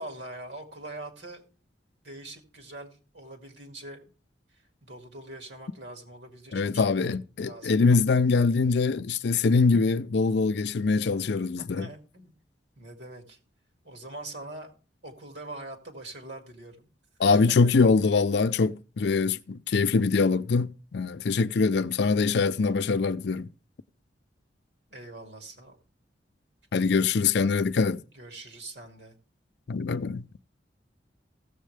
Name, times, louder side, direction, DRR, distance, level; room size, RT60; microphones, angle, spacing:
voice 1, 0.0-1.4 2.0-4.0 4.8-7.1 7.4-7.8 11.6-12.3 12.8-13.4 13.8-14.7 15.0-16.9 17.3-17.7 24.9-25.8 28.1-29.1, right 2 dB, 70° right, 2.4 m, -43 dB
voice 2, 6.5-11.9 17.2-23.5 26.7-28.0 29.7-30.3, left 4 dB, 65° left, 0.5 m, -23 dB
16.0 x 7.5 x 3.3 m
head